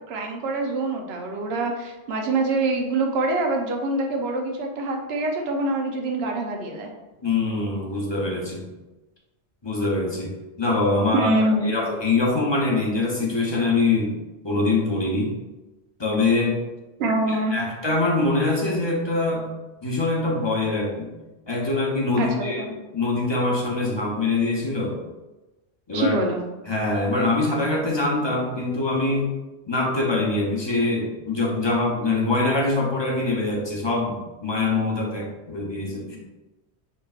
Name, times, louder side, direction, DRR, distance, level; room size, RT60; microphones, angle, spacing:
voice 1, 0.1-6.9 11.1-11.7 17.0-17.5 22.2-22.7 25.9-26.4, right 2 dB, 65° right, 2 dB, 0.9 m, -25 dB
voice 2, 7.2-8.7 9.6-10.3 10.6-14.2 14.4-15.4 16.0-16.6 17.3-19.5 19.8-21.1 21.5-22.6 22.9-25.0 25.9-26.2 26.7-29.3 29.7-36.2, left 2 dB, 25° left, -3 dB, 0.7 m, -24 dB
5.8 x 3.1 x 2.3 m, 1.1 s
omnidirectional pair, 1.1 m